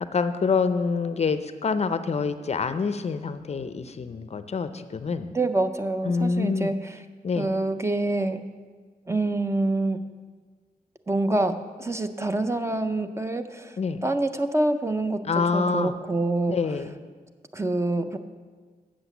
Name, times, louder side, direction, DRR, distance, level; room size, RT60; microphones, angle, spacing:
voice 1, 0.1-5.3 6.0-6.7 7.2-7.5 13.8-14.0 15.2-16.0 16.5-16.9, left 4 dB, 45° left, 11 dB, 0.5 m, -26 dB
voice 2, 5.3-6.9 7.4-8.4 9.1-10.0 11.1-13.7 14.0-16.6 17.5-18.2, right 2 dB, 20° right, 8 dB, 0.5 m, -26 dB
7.8 x 6.4 x 8.1 m, 1.5 s
wide cardioid pair, 120°, 16 cm